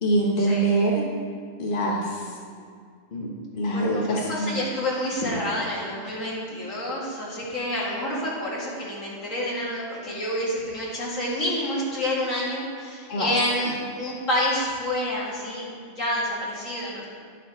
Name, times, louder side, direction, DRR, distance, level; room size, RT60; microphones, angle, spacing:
voice 1, 0.0-1.0 1.6-2.4 3.1-4.5 13.1-13.3, right 1 dB, 45° left, -3 dB, 1.3 m, -24 dB
voice 2, 3.7-17.1, left 1 dB, 85° left, -6 dB, 2.6 m, -28 dB
9.9 x 7.4 x 4.4 m, 2.1 s
omnidirectional pair, 1.3 m